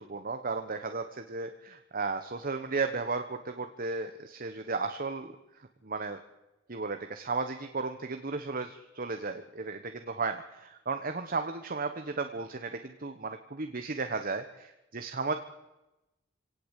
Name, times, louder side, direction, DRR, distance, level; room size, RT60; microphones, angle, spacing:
voice 1, 0.0-5.3 5.8-6.2 6.7-15.3, right 4 dB, 45° right, 7 dB, 1.3 m, -34 dB
26.0 x 17.5 x 8.4 m, 0.99 s
head